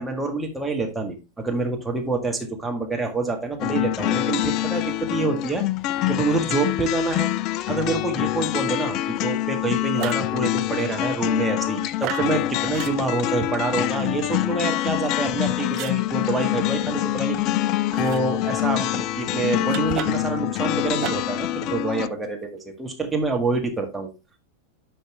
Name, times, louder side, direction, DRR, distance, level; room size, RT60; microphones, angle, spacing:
voice 1, 0.0-5.6 6.1-7.3 7.7-17.4 18.0-24.1, right 3 dB, 10° right, 2 dB, 1.8 m, -26 dB
sound 1, 3.6-22.1, left 14 dB, 40° left, 0.3 m, -25 dB
sound 2, 9.9-10.3 12.0-12.3 12.7-13.0 15.7-16.0 17.9-18.2 19.6-20.3 21.0-21.4, right 12 dB, 40° right, 0.7 m, -32 dB
10.5 x 5.4 x 3.3 m, 0.26 s
figure-of-eight pair, 90°, 0 cm